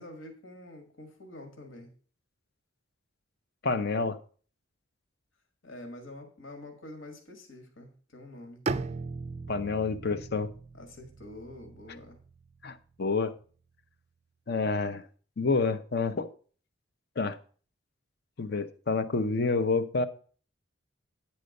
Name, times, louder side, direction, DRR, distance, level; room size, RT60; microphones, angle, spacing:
voice 1, 0.0-1.9 5.6-8.6 10.7-12.2, left 1 dB, 75° left, 1.7 m, -46 dB
voice 2, 3.6-4.2 9.5-10.5 12.6-13.3 14.5-15.1 15.4-16.3 17.2-17.4 18.4-20.1, left 4 dB, 55° left, 0.6 m, -28 dB
Bowed string instrument, 8.7-12.6, right 3 dB, 35° right, 0.3 m, -38 dB
9.7 x 4.4 x 6.5 m
head